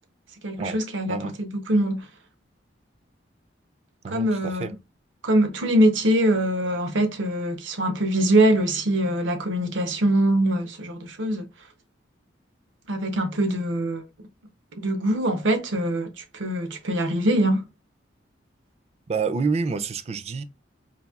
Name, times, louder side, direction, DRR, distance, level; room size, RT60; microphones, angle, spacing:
voice 1, 0.4-2.1 4.1-4.7 5.2-11.5 12.9-14.0 14.8-17.7, right 1 dB, 85° right, 0.7 m, -23 dB
voice 2, 4.0-4.7 19.1-20.4, right 4 dB, 35° right, 0.3 m, -28 dB
4.0 x 2.6 x 2.3 m
head